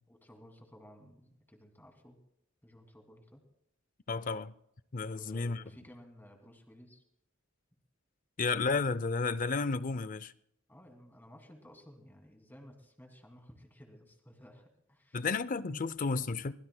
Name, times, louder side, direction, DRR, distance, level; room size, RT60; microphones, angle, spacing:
voice 1, 0.1-2.2 2.6-3.4 5.1-7.0 10.7-15.2 15.7-15.8, equal, 10° left, 2.6 m, -56 dB
voice 2, 4.1-4.5 4.9-5.6 8.4-10.3 15.1-16.5, left 4 dB, 40° left, 0.5 m, -32 dB
24.5 x 20.5 x 2.2 m
head